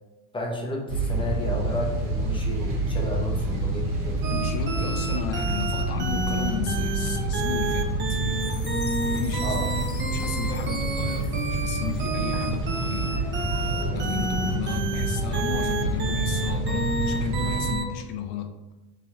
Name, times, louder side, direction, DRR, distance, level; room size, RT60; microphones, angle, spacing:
voice 1, 0.3-4.3 9.4-9.6, left 1 dB, 15° left, 0 dB, 0.7 m, -32 dB
sound 1, 0.9-17.7, right 1 dB, 55° right, 1.4 m, -28 dB
sound 2, 4.2-18.0, right 3 dB, 30° right, 0.7 m, -30 dB
voice 2, 4.3-8.2 9.0-9.6 10.1-13.2 13.9-18.6, left 9 dB, 65° left, 5 dB, 0.5 m, -34 dB
Chime, 8.4-12.6, left 4 dB, 35° left, 1.1 m, -45 dB
4.1 x 3.2 x 3.5 m, 1.1 s
cardioid pair, 135°, 38 cm